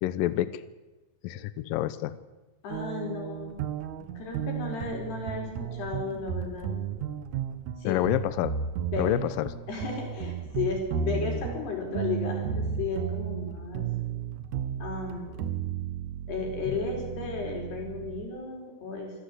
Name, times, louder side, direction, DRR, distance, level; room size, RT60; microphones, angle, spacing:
voice 1, 0.0-0.5 1.2-2.1 7.9-8.5 9.0-9.5 16.7-16.8, left 14 dB, 85° left, 14 dB, 2.0 m, -28 dB
voice 2, 2.6-3.6 4.2-6.7 7.8-8.0 8.9-9.2 9.7-13.9 14.8-15.5 16.3-19.1, left 4 dB, 65° left, 1 dB, 6.8 m, -34 dB
sound 1, 2.7-18.3, right 8 dB, 80° right, 1.7 m, -34 dB
26.5 x 15.5 x 8.3 m, 1.2 s
omnidirectional pair, 5.1 m